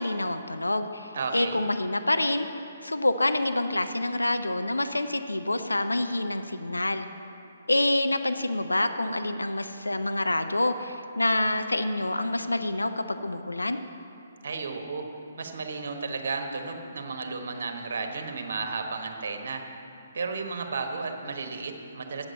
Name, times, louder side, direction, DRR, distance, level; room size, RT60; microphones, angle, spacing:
voice 1, 0.0-2.5 2.8-7.1 7.7-13.8, left 1 dB, 85° left, 8 dB, 0.5 m, -27 dB
voice 2, 1.1-1.6 14.4-15.1 15.4-19.6 20.1-22.2, right 4 dB, 60° right, 4 dB, 1.2 m, -33 dB
8.6 x 7.9 x 7.9 m, 2.8 s
figure-of-eight pair, 135°, 0 cm